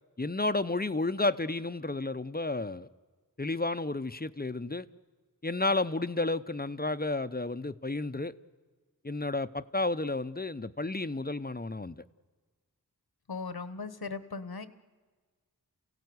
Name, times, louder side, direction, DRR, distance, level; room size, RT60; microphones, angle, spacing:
voice 1, 0.2-2.9 3.4-4.9 5.4-8.3 9.0-12.0, left 2 dB, 25° left, 12 dB, 0.8 m, -31 dB
voice 2, 13.3-14.7, left 4 dB, 80° left, 13 dB, 1.3 m, -38 dB
29.0 x 16.0 x 9.6 m, 1.4 s
wide cardioid pair, 40°, 37 cm